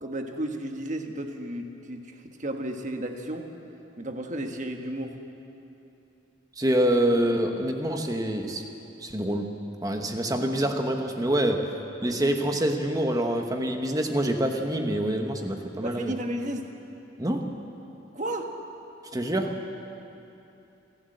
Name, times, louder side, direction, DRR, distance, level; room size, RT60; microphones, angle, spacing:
voice 1, 0.0-3.5 4.0-5.2 15.8-16.7 18.1-18.5 19.1-19.3, right 1 dB, 40° right, 4 dB, 1.4 m, -33 dB
voice 2, 6.6-8.6 9.0-9.5 9.8-11.7 12.0-16.2 17.2-17.5 19.0-19.6, right 1 dB, 20° right, 4 dB, 1.1 m, -26 dB
29.0 x 12.0 x 7.9 m, 2.8 s
head